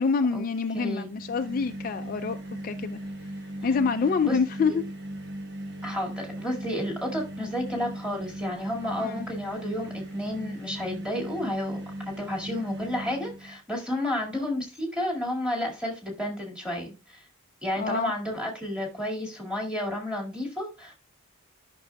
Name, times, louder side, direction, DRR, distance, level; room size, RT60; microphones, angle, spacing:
voice 1, 0.0-2.4 2.6-3.0 3.6-4.8 9.0-9.3 17.8-18.1, left 5 dB, 40° left, 0.3 m, -26 dB
voice 2, 0.7-1.1 3.6-3.7 4.2-4.8 5.8-11.8 12.1-17.2 17.6-20.9, left 1 dB, 5° right, 2.1 m, -31 dB
sound 1, 1.0-13.6, right 1 dB, 55° right, 1.2 m, -38 dB
11.5 x 6.1 x 2.2 m
head